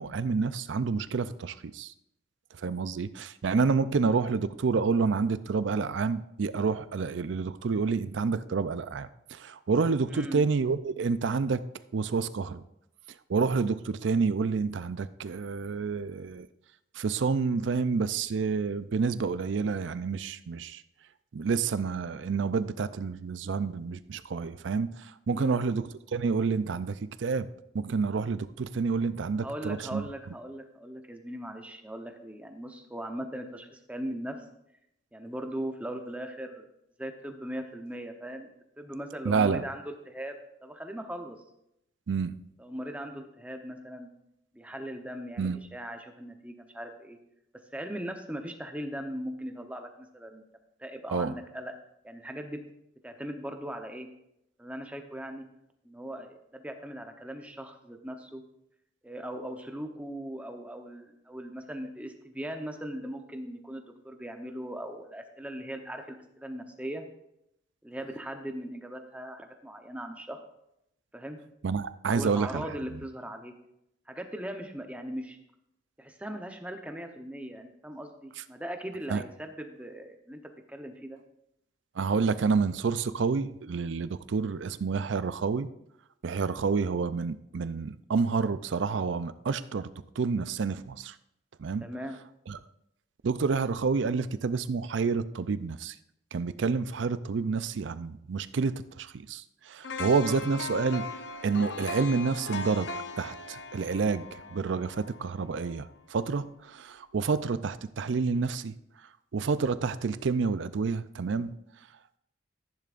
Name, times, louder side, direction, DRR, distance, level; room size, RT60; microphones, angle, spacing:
voice 1, 0.0-1.9 2.6-11.6 11.9-12.6 13.3-16.5 17.0-20.8 21.3-27.5 27.7-30.1 39.2-39.6 42.1-42.3 45.4-45.6 51.1-51.3 71.6-72.6 79.1-79.2 82.0-85.7 86.2-89.9 90.2-91.1 91.6-91.9 92.5-92.6 93.2-95.9 96.3-101.1 101.4-102.9 103.2-108.7 109.3-111.5, right 5 dB, 70° right, 14 dB, 0.4 m, -29 dB
voice 2, 10.1-10.4 25.3-25.6 29.4-34.4 35.1-36.7 37.0-38.5 38.8-40.3 40.6-41.4 42.6-44.1 44.5-47.2 47.7-50.4 50.8-51.7 52.0-52.6 53.0-54.1 54.6-55.4 55.8-58.4 59.0-67.0 67.8-70.4 71.1-71.4 72.1-73.5 74.1-75.4 76.0-80.4 80.7-81.2 91.8-92.2, equal, 5° right, 5 dB, 0.8 m, -39 dB
sound 1, 99.8-105.9 106.2-106.4, left 3 dB, 65° left, 0.8 m, -39 dB
13.5 x 10.5 x 2.5 m, 0.81 s
head